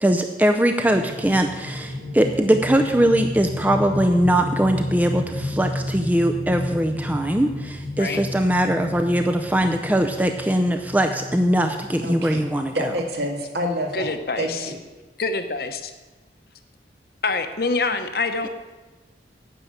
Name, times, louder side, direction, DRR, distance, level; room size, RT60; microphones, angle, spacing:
voice 1, 0.0-12.9, right 1 dB, 10° right, 5 dB, 0.5 m, -21 dB
sound 1, 0.8-13.1, left 1 dB, 85° right, 2.4 m, -32 dB
voice 2, 12.0-12.5 12.7-14.1 14.4-14.8, equal, 70° right, 2 dB, 2.0 m, -27 dB
voice 3, 13.9-14.7 15.2-15.9 17.2-18.5, left 3 dB, 55° left, 7 dB, 0.9 m, -25 dB
9.9 x 6.7 x 8.7 m, 1.2 s
head